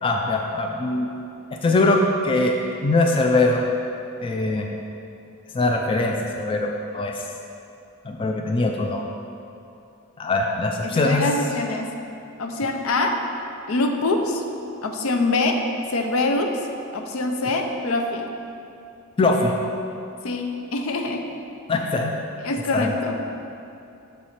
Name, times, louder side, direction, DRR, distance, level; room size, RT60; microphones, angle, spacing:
voice 1, 0.0-1.1 1.6-2.5 2.8-3.6 4.2-4.7 5.5-7.2 8.0-9.0 10.2-11.3 19.2-19.5 21.7-22.2 22.7-22.9, left 2 dB, 25° left, 1 dB, 0.3 m, -22 dB
voice 2, 10.8-11.9 12.4-13.2 13.7-14.4 14.8-15.6 15.9-16.5 16.9-18.3 20.2-21.2 22.4-23.2, left 2 dB, 75° left, 4 dB, 0.6 m, -24 dB
6.5 x 4.6 x 4.2 m, 2.7 s
head